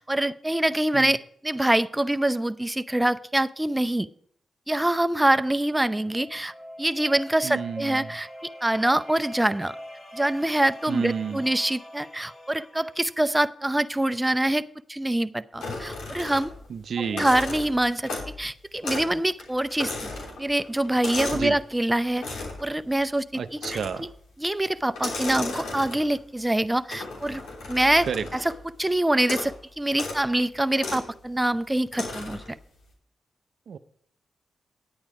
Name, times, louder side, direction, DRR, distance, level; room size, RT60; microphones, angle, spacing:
voice 1, 0.0-4.1 4.7-6.5 6.8-8.3 8.6-9.8 10.1-14.6 14.9-16.5 17.1-18.1 18.4-20.1 20.4-22.2 22.6-23.2 23.7-23.8 24.4-27.4 27.7-28.1 28.3-28.5 28.8-32.4, right 1 dB, 15° right, 12 dB, 0.6 m, -25 dB
sound 1, 5.6-13.4, left 1 dB, 30° left, 2.0 m, -44 dB
voice 2, 7.4-8.2 10.9-11.4 16.7-17.3 21.3-21.6 23.3-24.1 28.1-28.3 33.7-33.8, right 7 dB, 70° right, 12 dB, 0.5 m, -31 dB
sound 2, 15.6-16.7 17.0-18.4 18.8-19.1 19.4-21.5 22.2-22.7 23.6-24.1 24.9-26.2 26.9-28.6 29.2-29.6 29.9-30.2 30.8-31.1 31.9-32.5, left 3 dB, 85° left, 3.2 m, -34 dB
10.5 x 8.8 x 4.8 m, 0.63 s
supercardioid pair, 45°, 0 cm